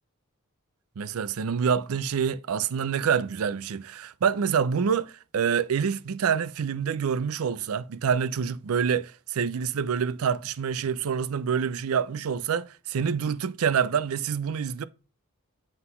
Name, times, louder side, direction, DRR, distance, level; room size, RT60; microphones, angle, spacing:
voice 1, 1.0-14.8, right 7 dB, 70° right, 0.4 m, -27 dB
7.8 x 3.9 x 5.5 m
head